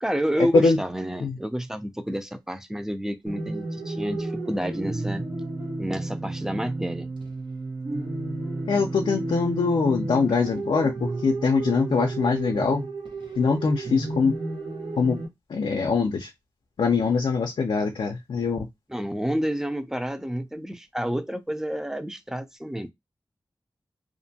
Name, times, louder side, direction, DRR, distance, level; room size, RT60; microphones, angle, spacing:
voice 1, 0.0-5.2 5.8-7.1 18.9-22.9, equal, 5° right, 0.4 m, -30 dB
sound 1, 3.3-15.3, right 2 dB, 70° right, 0.9 m, -32 dB
voice 2, 8.7-12.8 13.4-14.3 15.0-15.2 15.5-16.3 16.8-18.7, left 4 dB, 85° left, 0.5 m, -23 dB
2.5 x 2.2 x 2.7 m
wide cardioid pair, 60°, 8 cm